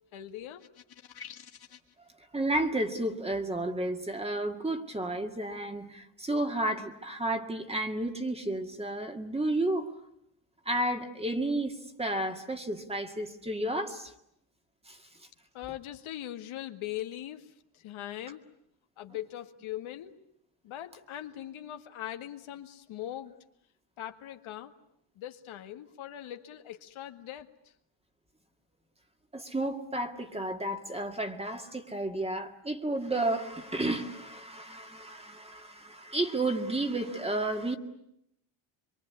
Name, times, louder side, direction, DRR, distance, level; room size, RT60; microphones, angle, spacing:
voice 1, 0.1-0.7 15.5-18.4 19.0-20.2 20.6-23.3 24.0-24.7 25.2-27.5, left 12 dB, 70° left, 7 dB, 1.9 m, -41 dB
sound 1, 0.6-1.9, left 8 dB, 45° left, 1.9 m, -48 dB
voice 2, 2.3-9.9 10.7-14.1 14.9-15.0 29.3-37.8, right 1 dB, 10° right, 6 dB, 2.1 m, -32 dB
25.5 x 24.0 x 9.6 m, 0.77 s
cardioid pair, 135°, 50 cm